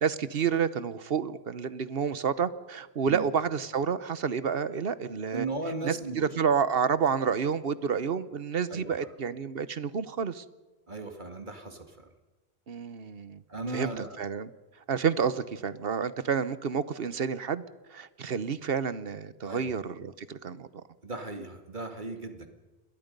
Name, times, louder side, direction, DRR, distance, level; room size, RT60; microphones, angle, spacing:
voice 1, 0.0-5.5 5.8-10.4 12.7-13.4 13.7-14.5 14.9-17.6 17.9-20.7, right 6 dB, 65° right, 15 dB, 1.2 m, -29 dB
voice 2, 5.3-6.4 8.7-9.1 10.9-12.1 13.5-14.2 19.4-19.8 21.0-22.5, right 3 dB, 50° right, 5 dB, 2.3 m, -37 dB
28.0 x 22.0 x 5.4 m, 1.2 s
omnidirectional pair, 1.1 m